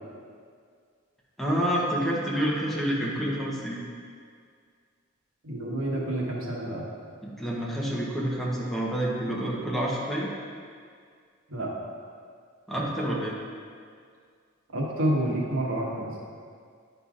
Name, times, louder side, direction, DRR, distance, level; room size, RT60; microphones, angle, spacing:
voice 1, 1.4-3.9 7.2-10.3 12.7-13.4, equal, ahead, -5 dB, 0.9 m, -28 dB
voice 2, 5.4-6.8 11.5-11.7 14.7-16.1, right 1 dB, 75° right, -4 dB, 1.3 m, -28 dB
10.0 x 5.5 x 2.5 m, 2.1 s
head